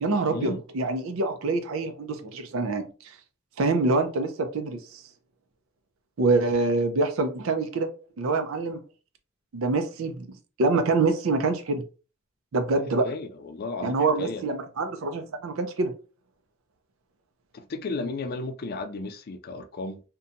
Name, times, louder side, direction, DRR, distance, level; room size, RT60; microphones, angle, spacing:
voice 1, 0.0-2.9 3.6-5.0 6.2-7.9 8.2-8.8 9.5-11.8 12.5-13.1 13.8-15.9, right 3 dB, 85° right, 0.5 m, -25 dB
voice 2, 13.0-14.4 17.5-20.0, left 3 dB, 50° left, 0.4 m, -34 dB
2.8 x 2.2 x 2.5 m
head